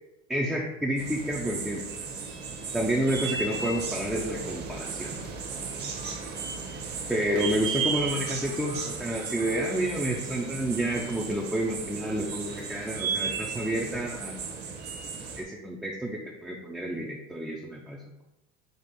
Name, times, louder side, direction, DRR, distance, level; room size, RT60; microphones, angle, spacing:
voice 1, 0.3-1.8 2.7-5.2 7.1-14.4 15.4-18.2, right 1 dB, ahead, -2 dB, 0.4 m, -30 dB
sound 1, 1.0-15.4, right 5 dB, 35° right, 0.8 m, -35 dB
5.3 x 2.4 x 4.1 m, 0.96 s
supercardioid pair, 105°, 31 cm